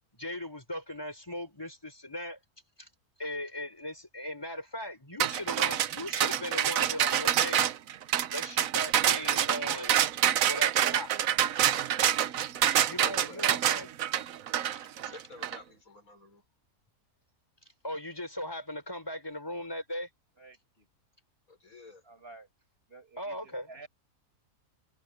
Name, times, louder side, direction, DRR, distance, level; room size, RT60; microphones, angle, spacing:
voice 1, 0.1-2.4 2.8-2.9 3.2-7.7 8.3-9.9 10.5-11.3 12.8-13.9 15.1-15.2 17.8-20.1 23.2-23.7, left 1 dB, 15° left, 5.3 m, -38 dB
sound 1, 5.2-15.6, right 10 dB, 65° right, 1.1 m, -27 dB
voice 2, 13.0-13.7 15.0-16.4 21.5-22.0, left 3 dB, 65° left, 5.7 m, -50 dB
voice 3, 20.4-20.9 22.0-22.5 22.9-23.9, right 3 dB, 40° right, 5.8 m, -51 dB
omnidirectional pair, 1.6 m